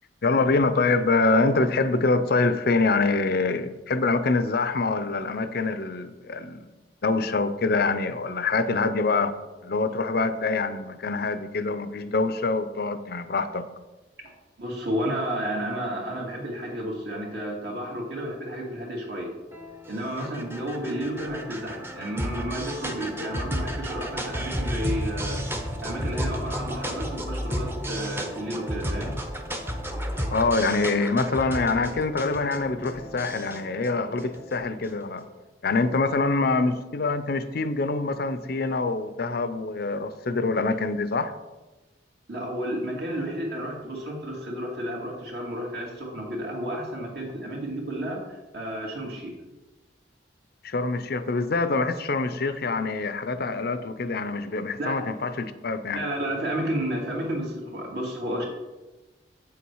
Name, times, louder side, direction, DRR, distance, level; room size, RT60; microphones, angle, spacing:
voice 1, 0.2-6.7 7.0-9.4 9.6-13.7 30.3-35.3 35.6-41.3 50.6-56.0, left 3 dB, 55° left, 0.6 m, -25 dB
voice 2, 14.6-19.3 19.9-25.4 25.8-29.2 42.3-49.3 54.8-55.0 55.9-58.4, right 1 dB, 60° right, 2.4 m, -31 dB
sound 1, 19.5-35.0, equal, 15° right, 0.8 m, -33 dB
8.0 x 7.1 x 4.7 m
head